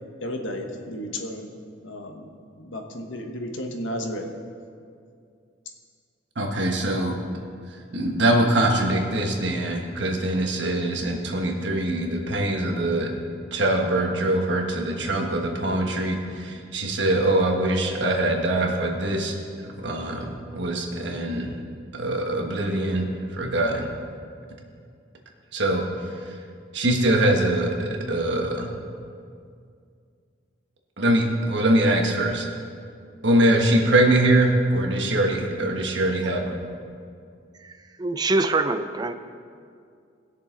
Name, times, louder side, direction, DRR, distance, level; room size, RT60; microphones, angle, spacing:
voice 1, 0.2-1.5 1.8-4.3, left 1 dB, 85° left, 3 dB, 1.1 m, -33 dB
voice 2, 6.3-7.1 7.9-13.1 13.5-19.3 19.6-21.5 21.9-23.9 25.5-25.9 26.2-26.4 26.7-28.7 31.0-32.5 33.2-36.6, right 1 dB, 70° right, 1 dB, 1.4 m, -23 dB
voice 3, 38.0-39.1, right 2 dB, 20° right, 9 dB, 0.4 m, -24 dB
19.0 x 6.7 x 3.8 m, 2.3 s
head